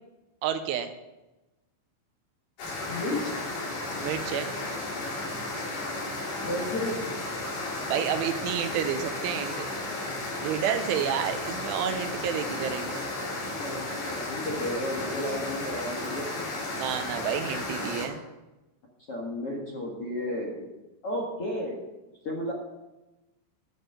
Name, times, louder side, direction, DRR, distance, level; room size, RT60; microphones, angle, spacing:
voice 1, 0.4-0.9 4.0-4.5 7.9-9.7 10.4-13.0 16.8-18.2, right 9 dB, 80° right, 8 dB, 3.1 m, -30 dB
sound 1, 2.6-18.1, left 2 dB, 70° left, 5.6 m, -34 dB
voice 2, 2.9-3.4 6.4-6.9 13.6-16.3 19.1-20.7 21.0-21.8 22.2-22.5, left 1 dB, 50° left, -3 dB, 1.7 m, -32 dB
12.5 x 6.4 x 7.9 m, 1.0 s
omnidirectional pair, 5.7 m